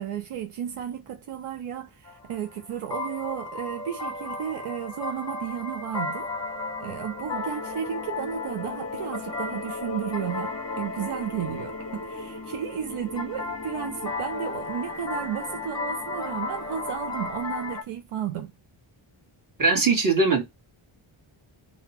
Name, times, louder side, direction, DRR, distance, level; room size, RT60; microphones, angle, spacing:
voice 1, 0.0-6.3 6.8-18.5, right 9 dB, 80° right, 0.7 m, -33 dB
sound 1, 2.1-17.8, left 3 dB, 10° left, 0.9 m, -35 dB
sound 2, 5.8-17.7, left 3 dB, 30° left, 0.5 m, -40 dB
voice 2, 19.6-20.4, right 4 dB, 40° right, 1.5 m, -20 dB
3.9 x 2.2 x 4.2 m
wide cardioid pair, 130°, 50 cm